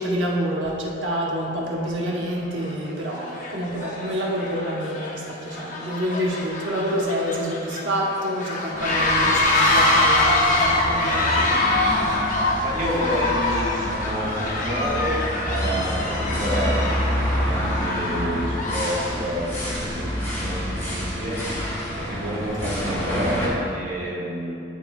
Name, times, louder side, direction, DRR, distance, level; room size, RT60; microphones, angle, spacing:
voice 1, 0.0-11.4 18.1-18.4 22.6-22.7, equal, 90° right, -3 dB, 1.0 m, -27 dB
sound 1, 1.7-1.8 2.5-2.7 3.1-19.0, left 2 dB, 45° left, 0.8 m, -24 dB
sound 2, 8.7-23.5, equal, 10° left, 1.5 m, -28 dB
voice 2, 12.6-16.9 17.4-21.7 22.0-24.6, equal, 45° right, -4 dB, 0.9 m, -29 dB
10.0 x 4.4 x 2.3 m, 2.6 s
head